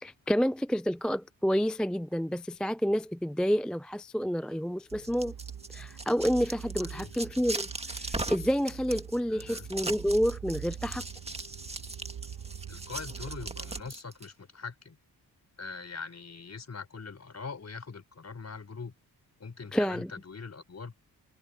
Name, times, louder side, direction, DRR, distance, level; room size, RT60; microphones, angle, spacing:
voice 1, 0.0-5.3 5.7-11.0 19.7-20.1, equal, ahead, 0.3 m, -29 dB
sound 1, 4.9-14.3, right 2 dB, 15° right, 1.9 m, -39 dB
sound 2, 4.9-13.8, right 8 dB, 60° right, 1.4 m, -43 dB
voice 2, 6.8-7.1 9.3-9.7 12.7-15.0 15.6-18.9 19.4-21.0, left 4 dB, 40° left, 4.8 m, -42 dB
cardioid pair, 90°, 39 cm